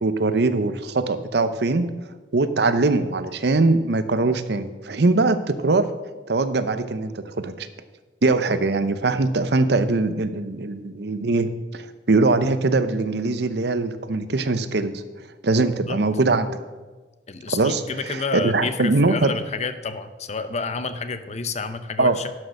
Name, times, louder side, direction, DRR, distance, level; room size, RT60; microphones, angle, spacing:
voice 1, 0.0-1.9 2.3-5.9 6.3-7.7 8.2-15.0 15.4-16.6 17.5-19.3 22.0-22.2, right 3 dB, 65° right, 11 dB, 0.7 m, -22 dB
voice 2, 17.3-22.3, left 4 dB, 40° left, 11 dB, 0.7 m, -29 dB
11.5 x 6.5 x 6.5 m, 1.3 s
head